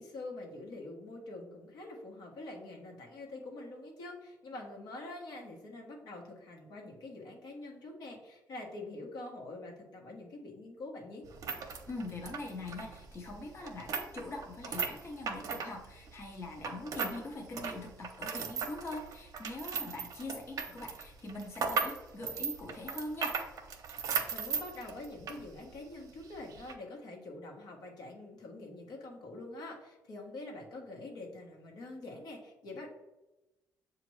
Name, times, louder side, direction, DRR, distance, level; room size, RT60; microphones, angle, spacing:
voice 1, 0.0-11.2 20.0-20.1 24.3-32.9, left 2 dB, 70° left, 0 dB, 1.1 m, -45 dB
sound 1, 11.2-17.2 17.5-25.4 25.7-25.8 26.5-26.7, right 5 dB, 55° right, 0.7 m, -37 dB
voice 2, 11.9-23.4, left 2 dB, 40° left, -1 dB, 0.8 m, -43 dB
6.9 x 2.5 x 3.1 m, 1.0 s
cardioid pair, 90°, 7 cm